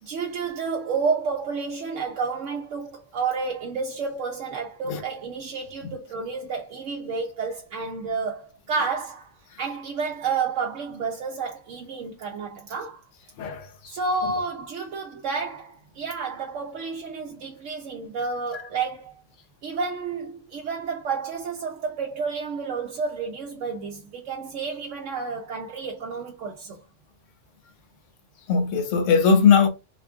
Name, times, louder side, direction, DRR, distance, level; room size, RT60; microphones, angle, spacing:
voice 1, 0.0-13.0 13.8-19.1 19.6-26.8, right 5 dB, 90° right, 1.0 m, -30 dB
voice 2, 28.5-29.7, left 6 dB, 85° left, 1.1 m, -19 dB
3.6 x 2.4 x 3.5 m
omnidirectional pair, 1.2 m